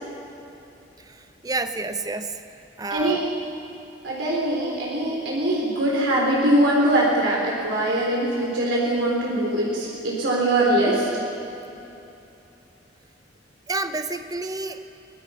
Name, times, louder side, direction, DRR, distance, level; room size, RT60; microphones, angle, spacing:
voice 1, 1.1-2.4 2.8-3.2 13.7-14.8, right 2 dB, 20° right, 9 dB, 0.8 m, -29 dB
voice 2, 2.9-3.2 4.0-11.1, right 1 dB, 80° right, -4 dB, 3.7 m, -22 dB
23.5 x 20.0 x 5.7 m, 2.9 s
head